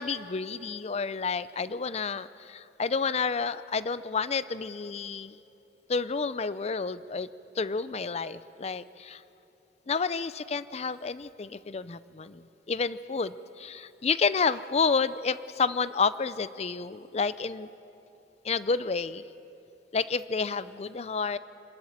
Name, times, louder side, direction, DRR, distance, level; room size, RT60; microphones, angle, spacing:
voice 1, 0.0-5.3 5.9-7.3 7.6-9.2 9.9-17.7 18.4-19.2 19.9-21.4, left 5 dB, 35° left, 15 dB, 0.5 m, -30 dB
26.5 x 13.5 x 9.0 m, 2.9 s
head